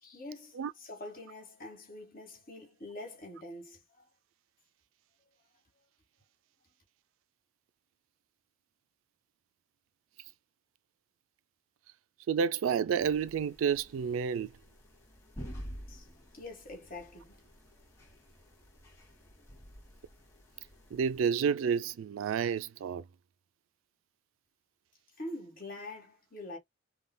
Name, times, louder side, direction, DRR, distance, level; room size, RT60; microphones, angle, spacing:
voice 1, 0.0-4.0 15.9-16.1 16.3-17.4 25.2-26.6, left 1 dB, 45° left, 1.8 m, -45 dB
voice 2, 12.3-14.5 20.9-23.0, right 7 dB, 85° right, 0.3 m, -30 dB
sound 1, 13.0-21.2, equal, 15° left, 2.0 m, -50 dB
5.3 x 2.2 x 2.2 m
head